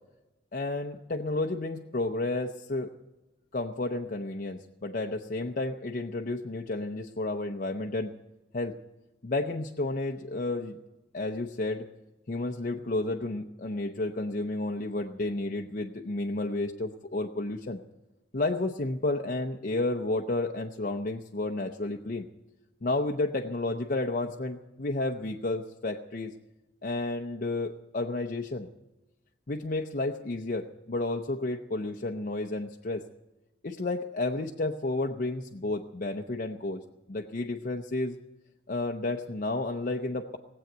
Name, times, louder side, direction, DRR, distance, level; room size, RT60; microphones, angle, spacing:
voice 1, 0.5-2.9 3.5-8.1 8.5-8.8 9.2-10.8 11.1-11.9 12.3-17.8 18.3-22.3 22.8-26.3 26.8-28.7 29.5-33.0 33.6-38.2 38.7-40.4, left 2 dB, 45° left, 2 dB, 0.7 m, -31 dB
19.5 x 7.9 x 9.0 m, 1.0 s
head